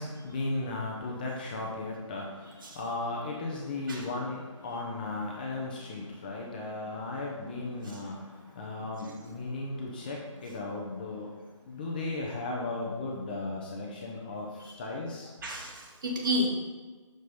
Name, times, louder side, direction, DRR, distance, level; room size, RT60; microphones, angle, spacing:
voice 1, 0.0-15.3, left 2 dB, 15° left, -2 dB, 0.6 m, -36 dB
voice 2, 15.4-16.5, equal, 40° right, 0 dB, 1.4 m, -31 dB
6.5 x 5.0 x 5.3 m, 1.3 s
figure-of-eight pair, 155°, 17 cm